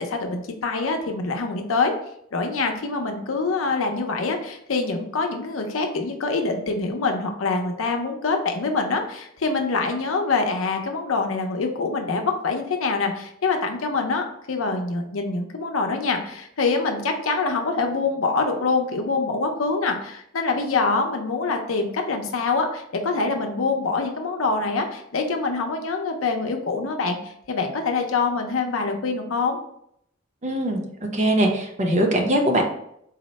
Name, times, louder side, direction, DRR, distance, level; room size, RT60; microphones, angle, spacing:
voice 1, 0.0-1.9 2.3-29.6, left 4 dB, 85° left, 4 dB, 0.6 m, -25 dB
voice 2, 30.4-32.6, right 1 dB, 35° right, 2 dB, 0.7 m, -21 dB
4.1 x 2.1 x 4.0 m, 0.72 s
head